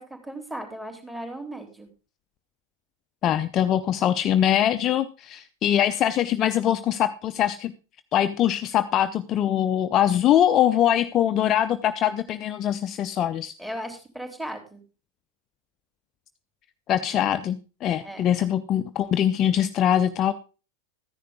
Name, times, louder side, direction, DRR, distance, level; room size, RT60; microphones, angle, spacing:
voice 1, 0.0-1.9 13.6-14.8 18.0-18.2, right 1 dB, 5° right, 4 dB, 3.4 m, -36 dB
voice 2, 3.2-7.7 8.1-13.5 16.9-20.3, left 10 dB, 30° left, 11 dB, 0.6 m, -23 dB
14.5 x 10.5 x 3.7 m, 0.34 s
figure-of-eight pair, 90°, 0 cm